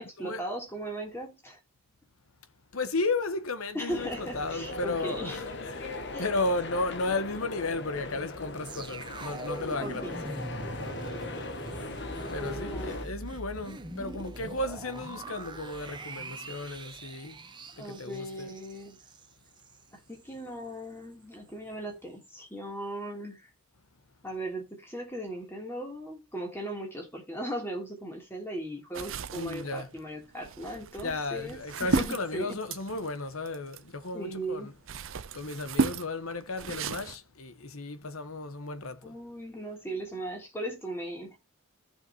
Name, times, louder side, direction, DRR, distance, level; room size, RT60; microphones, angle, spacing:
voice 1, 0.0-1.6 3.7-5.4 6.1-6.3 9.8-10.3 12.3-13.0 17.8-19.0 19.9-23.5 24.2-32.6 34.1-34.7 39.0-41.4, right 1 dB, 10° left, 3.1 m, -38 dB
voice 2, 2.7-10.0 12.3-17.3 17.8-18.5 29.3-29.9 31.0-34.7 35.3-39.1, left 2 dB, 75° left, 1.2 m, -34 dB
sound 1, 3.9-13.1, left 2 dB, 50° left, 1.1 m, -39 dB
sound 2, 8.6-19.8 20.2-20.3, right 2 dB, 20° right, 0.9 m, -42 dB
sound 3, 28.9-34.2 34.6-37.2, right 4 dB, 65° right, 0.6 m, -34 dB
15.0 x 5.7 x 3.0 m
head